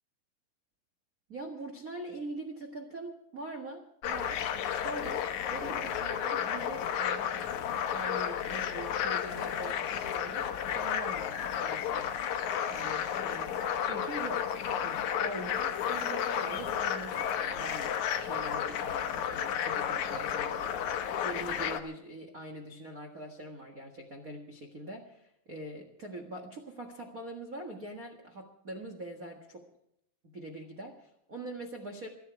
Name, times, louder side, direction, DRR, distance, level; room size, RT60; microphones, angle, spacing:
voice 1, 1.3-4.4 4.8-12.1 12.7-20.7 21.2-29.7 30.2-32.1, right 1 dB, 85° right, 2 dB, 0.7 m, -43 dB
sound 1, 4.0-21.8, left 9 dB, 65° left, 1.9 m, -32 dB
28.5 x 9.4 x 4.6 m, 0.76 s
omnidirectional pair, 4.6 m